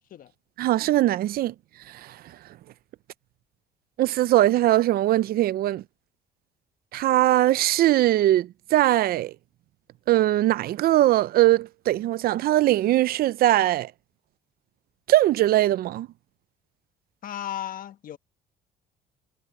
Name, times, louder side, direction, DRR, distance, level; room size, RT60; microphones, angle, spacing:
voice 1, 0.6-1.5 1.9-2.2 4.0-5.8 6.9-9.3 10.1-13.9 15.1-16.1, right 14 dB, 65° right, 0.5 m, -21 dB
voice 2, 17.2-18.2, left 11 dB, 55° left, 1.2 m, -35 dB
cardioid pair, 110°, 17 cm